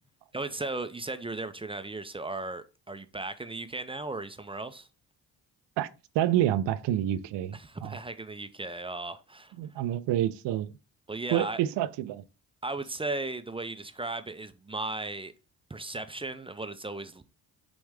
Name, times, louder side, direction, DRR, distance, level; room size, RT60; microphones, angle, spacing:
voice 1, 0.3-4.9 7.5-9.5 11.1-11.6 12.6-15.3 15.7-17.2, right 2 dB, 10° right, 0.4 m, -36 dB
voice 2, 6.1-8.0 9.6-10.7 11.3-12.2, right 12 dB, 65° right, 0.5 m, -28 dB
4.9 x 3.1 x 3.4 m
supercardioid pair, 50°, 47 cm